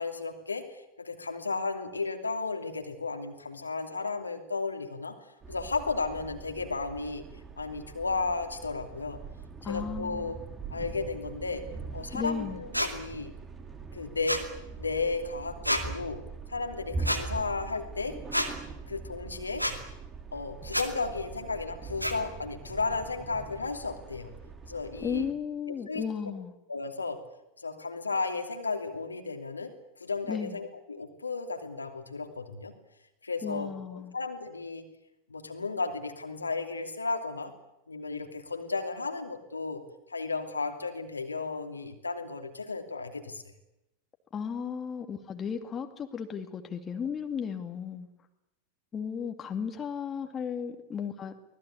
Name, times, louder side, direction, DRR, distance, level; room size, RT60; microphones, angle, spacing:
voice 1, 0.0-5.1 5.5-7.2 7.6-9.2 9.6-10.4 10.7-11.6 11.9-13.3 13.9-14.5 14.8-16.2 16.5-18.2 18.9-19.6 20.3-24.3 24.6-25.2 25.9-26.0 26.7-27.2 27.6-29.7 30.0-32.7 33.2-34.8 35.3-37.5 37.9-39.8 40.1-43.4, left 4 dB, 80° left, 5 dB, 2.7 m, -34 dB
sound 1, 5.4-25.3, right 4 dB, 20° right, 3.1 m, -42 dB
voice 2, 9.6-10.3 12.1-12.6 25.0-26.5 30.3-30.6 33.4-34.2 44.3-48.1 48.9-51.3, left 7 dB, 20° left, 5 dB, 2.4 m, -35 dB
sound 2, 12.7-12.9 14.3-14.5 15.6-15.8 17.0-17.2 18.3-18.5 19.6-19.8 20.7-20.9 22.0-22.1, equal, 90° right, 2.4 m, -28 dB
24.5 x 19.0 x 8.7 m, 0.88 s
figure-of-eight pair, 90°, 0 cm